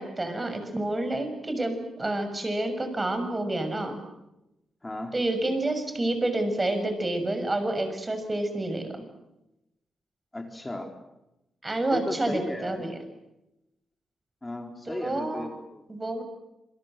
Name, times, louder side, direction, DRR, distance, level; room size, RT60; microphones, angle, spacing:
voice 1, 0.0-4.0 5.1-9.0 11.6-13.0 14.9-15.5 15.9-16.2, right 2 dB, 25° right, 8 dB, 6.6 m, -29 dB
voice 2, 4.8-5.1 10.3-10.9 11.9-12.9 14.4-15.8, left 1 dB, 15° left, 4 dB, 4.2 m, -35 dB
28.0 x 23.0 x 7.7 m, 0.91 s
cardioid pair, 85°, 0 cm